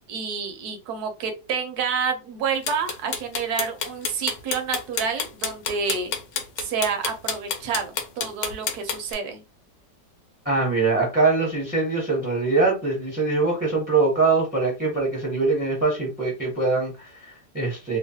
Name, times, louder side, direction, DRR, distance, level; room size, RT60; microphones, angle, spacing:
voice 1, 0.1-6.1 6.6-9.4, right 6 dB, 70° right, 6 dB, 1.1 m, -29 dB
sound 1, 2.6-9.1, left 6 dB, 70° left, 0.9 m, -28 dB
voice 2, 10.4-18.0, right 3 dB, 10° right, -2 dB, 0.4 m, -23 dB
3.1 x 2.0 x 2.7 m, 0.29 s
omnidirectional pair, 1.9 m